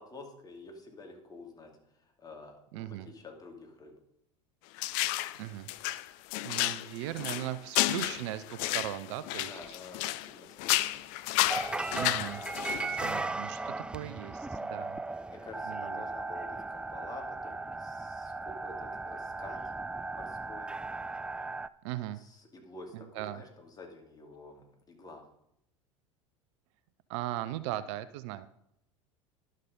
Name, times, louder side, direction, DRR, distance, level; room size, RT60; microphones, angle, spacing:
voice 1, 0.0-1.7 2.0-3.9 9.4-11.0 15.3-19.6 20.1-20.7 22.1-25.2, left 3 dB, 25° left, 2 dB, 2.7 m, -49 dB
voice 2, 2.7-3.1 5.4-5.7 6.4-9.8 11.9-12.4 13.0-15.0 15.7-16.0 21.8-22.2 22.9-23.4 27.1-28.5, right 14 dB, 60° right, 14 dB, 0.5 m, -38 dB
sound 1, 4.8-5.4 5.7-10.3 10.6-13.1, left 17 dB, 55° left, 0.5 m, -32 dB
sound 2, 11.5-21.7, right 3 dB, 5° right, 0.4 m, -37 dB
11.5 x 6.5 x 5.3 m, 0.80 s
hypercardioid pair, 80°, 17 cm